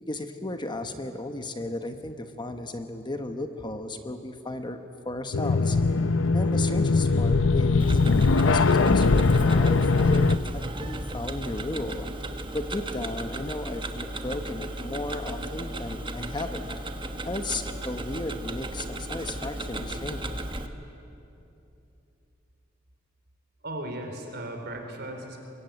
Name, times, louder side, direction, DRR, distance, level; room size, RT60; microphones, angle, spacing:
voice 1, 0.0-4.8 5.0-5.8 6.3-8.0 8.4-12.1 12.5-16.7 17.2-20.4, left 2 dB, 25° left, 7 dB, 1.2 m, -34 dB
sound 1, 5.3-10.4, left 3 dB, 70° left, 0.7 m, -21 dB
Tick-tock, 7.8-20.7, right 1 dB, 25° right, 1.3 m, -35 dB
voice 2, 23.6-25.4, right 1 dB, 55° right, 4 dB, 4.2 m, -36 dB
23.5 x 23.0 x 9.4 m, 2.9 s
head